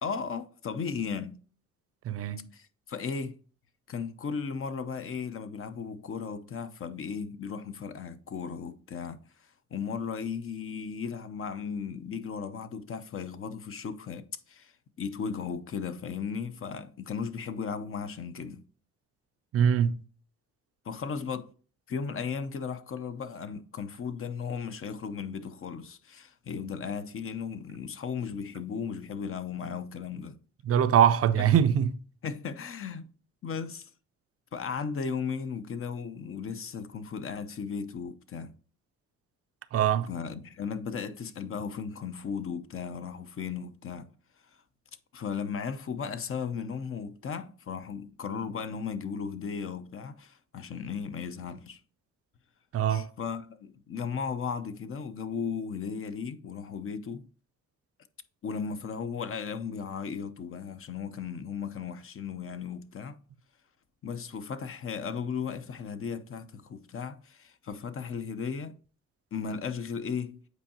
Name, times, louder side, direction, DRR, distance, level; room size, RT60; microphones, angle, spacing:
voice 1, 0.0-1.4 2.5-3.4 3.9-9.2 9.7-14.7 15.0-18.6 20.8-21.5 21.9-30.4 31.4-31.5 32.2-33.1 33.4-33.9 34.5-38.5 40.1-44.1 45.1-51.8 52.9-57.2 58.4-63.2 64.0-68.8 69.3-70.4, left 6 dB, 45° left, 0.7 m, -36 dB
voice 2, 2.1-2.5 19.5-20.0 30.7-32.0 39.7-40.1 52.7-53.1, right 9 dB, 50° right, 0.5 m, -23 dB
8.2 x 4.6 x 2.8 m
cardioid pair, 90°, 30 cm